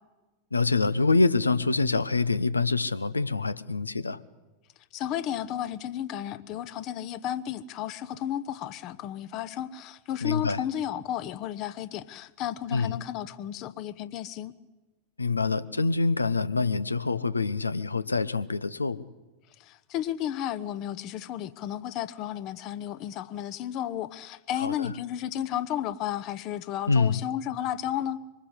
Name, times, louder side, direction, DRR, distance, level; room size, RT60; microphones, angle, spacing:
voice 1, 0.5-4.2 10.2-10.6 12.7-13.0 15.2-19.0 24.6-24.9 26.9-27.2, left 3 dB, 80° left, 16 dB, 0.8 m, -25 dB
voice 2, 4.9-14.5 19.6-28.2, left 11 dB, 40° left, 15 dB, 1.0 m, -33 dB
24.5 x 20.0 x 8.1 m, 1.2 s
figure-of-eight pair, 90°, 0 cm